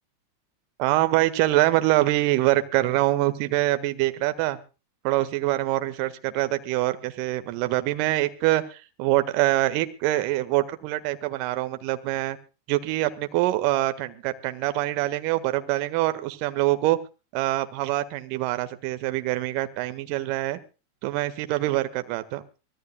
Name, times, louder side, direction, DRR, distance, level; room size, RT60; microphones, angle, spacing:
voice 1, 0.8-4.6 5.0-12.4 12.7-17.0 17.3-20.6 21.0-22.4, right 16 dB, 45° right, 10 dB, 1.6 m, -24 dB
24.5 x 16.5 x 2.3 m, 0.33 s
figure-of-eight pair, 90°, 0 cm